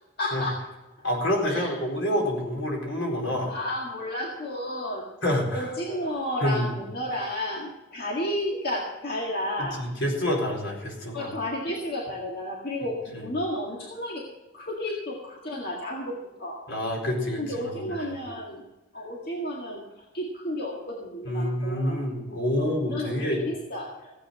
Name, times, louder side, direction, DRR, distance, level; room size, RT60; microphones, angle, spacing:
voice 1, 0.2-0.6 1.5-1.7 3.5-5.0 5.5-9.8 11.1-14.3 14.5-16.6 17.4-18.6 18.9-19.8 20.1-22.0 22.6-24.1, left 1 dB, 50° left, -2 dB, 1.9 m, -32 dB
voice 2, 1.0-3.5 5.2-5.7 6.4-6.7 9.6-11.3 13.1-13.3 16.7-18.0 21.3-23.4, left 1 dB, 75° left, -1 dB, 4.3 m, -27 dB
16.0 x 8.5 x 5.6 m, 1.0 s
head